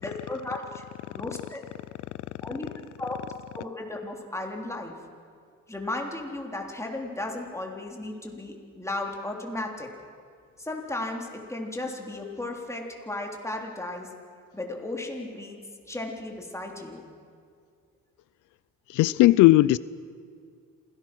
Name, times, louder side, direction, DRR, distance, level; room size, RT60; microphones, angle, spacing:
voice 1, 0.0-0.8 1.1-1.6 2.4-2.7 3.0-3.2 3.5-4.9 5.7-9.9 10.6-14.1 14.5-15.6 15.9-17.0, left 2 dB, 10° left, 0 dB, 3.6 m, -35 dB
voice 2, 18.9-19.8, left 17 dB, 90° left, 18 dB, 0.5 m, -17 dB
27.0 x 17.5 x 6.1 m, 2.1 s
cardioid pair, 90°, 30 cm